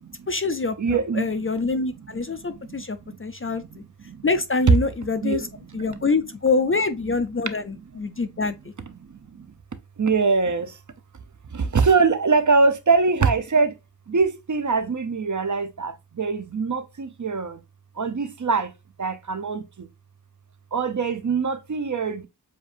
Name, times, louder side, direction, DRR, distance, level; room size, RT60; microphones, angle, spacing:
voice 1, 0.3-3.6 4.2-5.5 5.7-8.6, left 4 dB, 30° left, 0.4 m, -25 dB
voice 2, 0.8-1.3 2.3-2.8 3.1-3.2 3.4-3.8 4.0-4.3 5.2-5.4 5.7-6.0 7.7-7.8 8.1-8.2 9.0-9.5 10.0-10.8 11.5-13.7 14.1-17.6 18.0-18.7 19.0-19.9 20.7-22.3, right 4 dB, 45° right, 0.6 m, -23 dB
7.3 x 2.6 x 2.5 m
wide cardioid pair, 90°, 43 cm